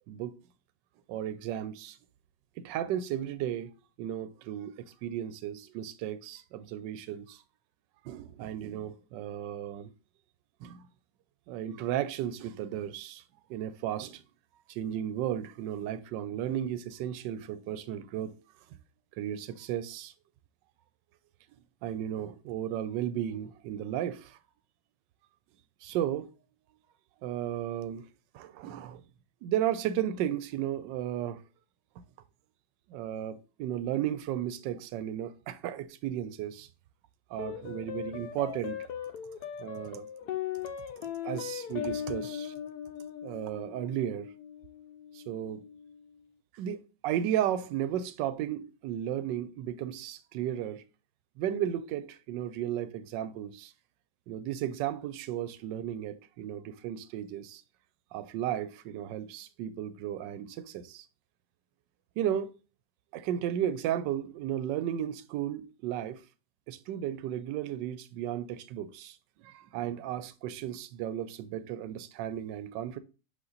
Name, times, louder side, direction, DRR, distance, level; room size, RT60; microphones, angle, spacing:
voice 1, 1.1-2.0 2.6-3.7 4.0-7.4 8.0-9.9 10.6-10.9 11.5-13.2 13.5-14.2 14.7-18.3 19.2-20.1 21.8-24.4 25.8-26.3 27.2-28.0 28.3-29.0 29.4-31.4 32.9-36.7 37.3-38.8 39.6-40.1 41.2-42.5 43.2-44.3 45.1-45.6 46.5-50.8 51.4-53.7 54.3-57.6 58.1-61.0 62.2-62.5 63.1-66.2 66.7-69.2 69.4-73.0, right 11 dB, 75° right, 1.2 m, -34 dB
sound 1, 37.4-46.0, left 9 dB, 65° left, 1.1 m, -39 dB
8.1 x 2.9 x 3.9 m
omnidirectional pair, 2.1 m